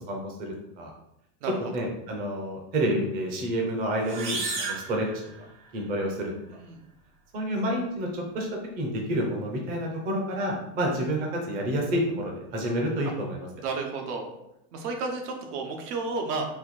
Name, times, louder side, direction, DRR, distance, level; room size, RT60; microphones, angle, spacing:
voice 1, 0.1-0.9 1.7-5.1 5.7-6.3 7.3-8.5 8.8-13.5, right 1 dB, 20° right, 0 dB, 0.5 m, -29 dB
sound 1, 4.0-5.9, right 4 dB, 50° right, 1.0 m, -34 dB
voice 2, 13.6-14.3 14.7-16.5, right 3 dB, 85° right, 3 dB, 1.1 m, -32 dB
4.2 x 2.5 x 4.1 m, 0.82 s
supercardioid pair, 165°, 45 cm